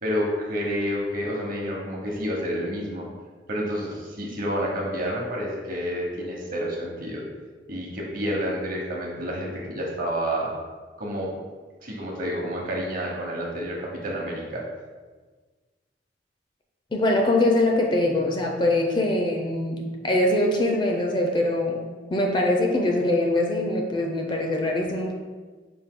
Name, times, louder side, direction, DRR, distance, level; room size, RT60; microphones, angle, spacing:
voice 1, 0.0-3.1 3.5-7.2 7.7-10.5 11.0-11.3 11.8-14.6, equal, 50° right, -2 dB, 1.0 m, -29 dB
voice 2, 16.9-25.1, left 1 dB, 25° left, 1 dB, 0.4 m, -23 dB
5.1 x 2.6 x 3.7 m, 1.4 s
head